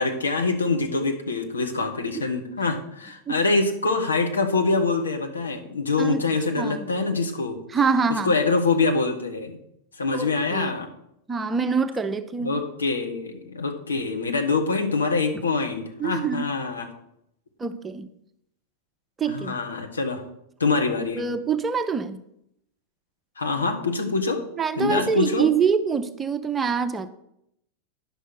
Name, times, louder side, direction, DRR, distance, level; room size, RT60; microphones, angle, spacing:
voice 1, 0.0-7.6 8.2-9.6 10.0-10.9 12.4-16.9 19.3-20.2 20.6-21.3 23.4-24.4 24.7-25.5, left 3 dB, 75° left, 3 dB, 1.4 m, -25 dB
voice 2, 6.6-6.9 7.7-8.3 10.1-10.7 11.3-12.6 16.0-16.5 17.6-18.1 19.2-19.6 21.1-22.2 24.6-27.1, right 6 dB, 15° right, 10 dB, 0.6 m, -25 dB
10.0 x 6.3 x 6.0 m, 0.78 s
figure-of-eight pair, 90°, 0 cm